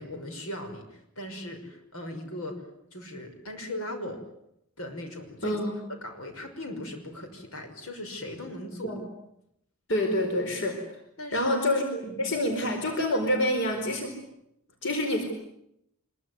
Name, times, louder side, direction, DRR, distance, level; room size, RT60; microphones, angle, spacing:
voice 1, 0.0-2.6 2.9-4.2 4.8-5.6 6.0-8.9 11.2-11.5 12.0-12.2, left 1 dB, 80° left, 5 dB, 5.9 m, -38 dB
voice 2, 5.4-5.8 8.8-9.0 9.9-10.8 11.3-14.1 14.8-15.2, left 1 dB, 55° left, 4 dB, 4.5 m, -27 dB
25.5 x 23.0 x 9.7 m, 0.79 s
head